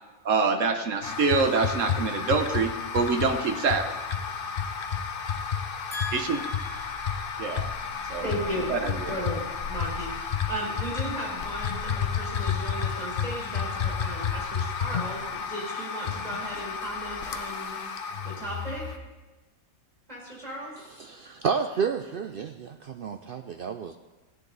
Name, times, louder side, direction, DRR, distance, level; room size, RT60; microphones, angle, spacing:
voice 1, 0.2-3.9 6.1-6.4 7.4-7.7 8.0-8.3 8.7-9.1, right 4 dB, 60° right, 7 dB, 1.3 m, -25 dB
sound 1, 1.0-19.0, left 6 dB, 50° left, 0.7 m, -31 dB
voice 2, 5.9-7.2 8.2-8.7 9.1-9.4 9.7-17.8 18.2-18.8 20.1-20.7, equal, 25° right, -5 dB, 4.6 m, -36 dB
voice 3, 21.0-24.0, right 6 dB, 80° right, 7 dB, 0.5 m, -30 dB
16.0 x 10.5 x 4.0 m, 1.2 s
omnidirectional pair, 1.5 m